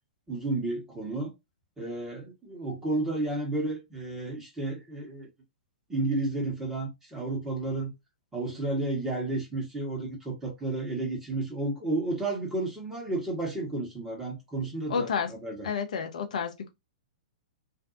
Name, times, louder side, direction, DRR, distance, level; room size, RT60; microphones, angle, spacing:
voice 1, 0.3-1.3 1.8-5.3 5.9-7.9 8.3-15.1 15.4-15.7, right 2 dB, 10° right, 1.2 m, -32 dB
voice 2, 14.9-15.3 15.6-16.7, left 6 dB, 60° left, 0.7 m, -30 dB
2.6 x 2.2 x 2.5 m
figure-of-eight pair, 110°, 4 cm